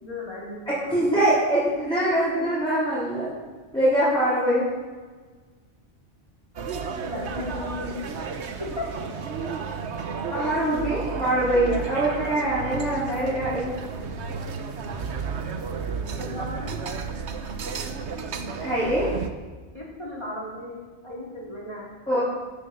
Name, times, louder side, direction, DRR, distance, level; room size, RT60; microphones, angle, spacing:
voice 1, 0.0-1.1 7.0-8.1 8.6-8.9 15.9-16.8 19.7-21.9, left 2 dB, 25° left, -5 dB, 4.0 m, -36 dB
voice 2, 0.7-3.3 3.7-4.7 10.3-13.7 18.6-19.1 22.1-22.2, right 1 dB, 5° left, -12 dB, 4.2 m, -23 dB
sound 1, 6.6-19.3, right 5 dB, 65° right, 1.2 m, -32 dB
12.5 x 8.0 x 7.8 m, 1.4 s
omnidirectional pair, 1.2 m